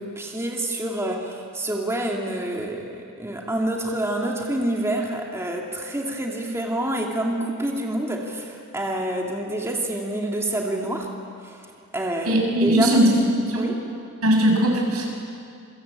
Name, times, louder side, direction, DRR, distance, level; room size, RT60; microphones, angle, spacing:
voice 1, 0.0-11.1 11.4-11.7 11.9-13.0 13.6-13.8, right 1 dB, 10° right, 0 dB, 2.2 m, -27 dB
voice 2, 12.2-13.7 14.2-15.1, right 1 dB, 85° right, 1 dB, 6.5 m, -19 dB
27.5 x 24.5 x 8.8 m, 2.4 s
head